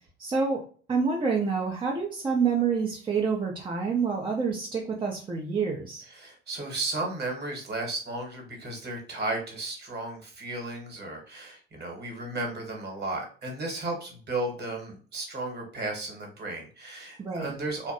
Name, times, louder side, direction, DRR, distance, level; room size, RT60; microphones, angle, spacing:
voice 1, 0.2-0.6 0.9-6.0 17.2-17.5, right 5 dB, 15° right, -2 dB, 0.5 m, -27 dB
voice 2, 6.1-17.9, right 2 dB, 30° right, 2 dB, 1.1 m, -34 dB
2.6 x 2.1 x 2.5 m, 0.41 s
hypercardioid pair, 70°, 32 cm